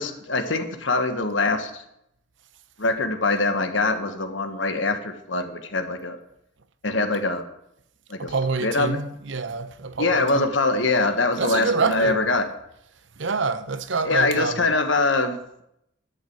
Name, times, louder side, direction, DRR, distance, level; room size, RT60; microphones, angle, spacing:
voice 1, 0.0-1.8 2.8-6.2 6.8-7.5 8.1-8.3 8.6-9.0 10.0-12.5 14.0-15.4, left 3 dB, 70° left, 1.5 m, -23 dB
voice 2, 8.2-10.5 11.4-12.2 13.2-14.7, right 4 dB, 65° right, 0.9 m, -27 dB
12.0 x 7.9 x 8.1 m
head